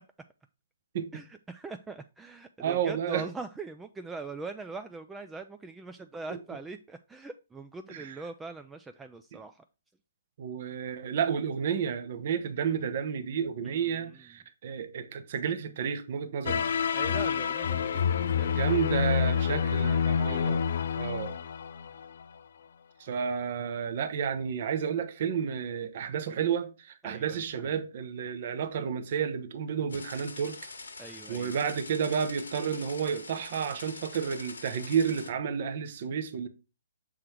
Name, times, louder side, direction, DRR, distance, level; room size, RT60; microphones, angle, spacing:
voice 1, 1.1-9.6 13.6-14.2 16.9-20.2 27.0-27.4 31.0-31.7, right 3 dB, 10° right, 0.3 m, -42 dB
voice 2, 2.6-3.2 6.3-6.4 7.9-8.2 10.4-16.7 18.5-20.6 21.0-21.3 23.0-30.6 31.3-36.5, right 7 dB, 50° right, 0.9 m, -31 dB
sound 1, 16.5-22.2, left 7 dB, 60° left, 0.4 m, -28 dB
sound 2, 29.9-35.3, left 3 dB, 80° left, 1.2 m, -44 dB
6.5 x 3.8 x 4.4 m
hypercardioid pair, 135°, 0 cm